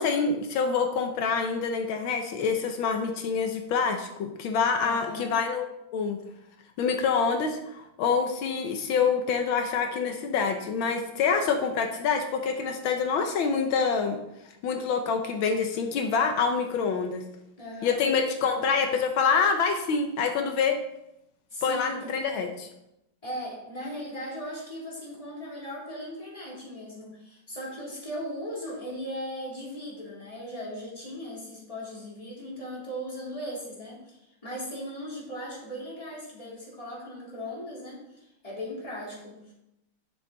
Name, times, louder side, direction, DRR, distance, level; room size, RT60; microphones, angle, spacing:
voice 1, 0.0-6.2 6.8-14.2 14.6-17.2 17.8-20.8 21.6-22.7, left 5 dB, 85° left, 4 dB, 1.7 m, -26 dB
voice 2, 4.8-5.3 17.6-18.0 18.4-18.5 21.5-22.1 22.3-22.4 23.2-39.5, equal, 15° left, -6 dB, 3.2 m, -38 dB
10.5 x 7.1 x 4.0 m, 0.87 s
omnidirectional pair, 2.2 m